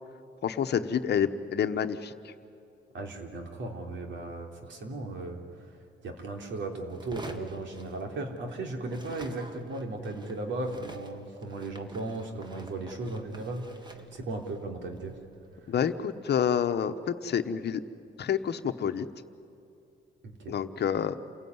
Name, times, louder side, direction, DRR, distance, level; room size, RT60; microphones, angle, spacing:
voice 1, 0.4-2.3 15.7-16.9 17.2-17.8 18.2-19.1 20.5-21.1, left 8 dB, 55° left, 9 dB, 1.1 m, -28 dB
voice 2, 2.9-5.4 6.0-13.7 14.1-15.1 20.2-20.5, right 2 dB, 70° right, 3 dB, 3.5 m, -36 dB
sound 1, 6.9-8.5 8.8-16.0, right 1 dB, 20° right, 1.8 m, -49 dB
28.0 x 16.5 x 9.6 m, 2.8 s
cardioid pair, 90°, 20 cm